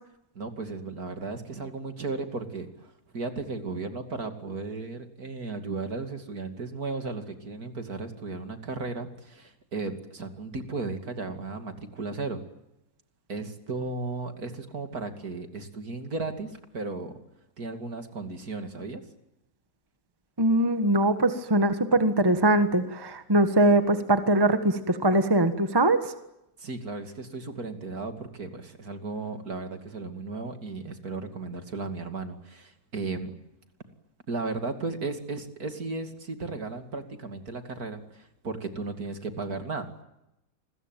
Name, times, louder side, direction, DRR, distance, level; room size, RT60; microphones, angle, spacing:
voice 1, 0.3-12.4 13.3-17.1 17.6-19.0 26.6-33.3 34.3-39.9, right 3 dB, 50° right, 7 dB, 3.0 m, -35 dB
voice 2, 20.4-26.1, right 1 dB, 15° right, 9 dB, 1.4 m, -22 dB
29.0 x 22.0 x 9.2 m, 0.88 s
omnidirectional pair, 2.1 m